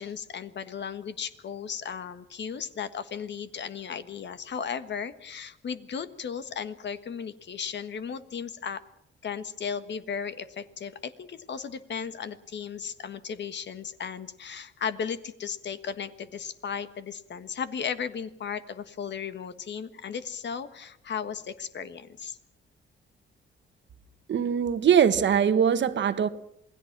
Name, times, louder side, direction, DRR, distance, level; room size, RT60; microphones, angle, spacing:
voice 1, 0.0-8.8 9.2-22.4, left 7 dB, 55° left, 1.5 m, -35 dB
voice 2, 24.3-26.3, right 8 dB, 60° right, 1.4 m, -22 dB
28.0 x 20.0 x 6.1 m
cardioid pair, 130°, 21 cm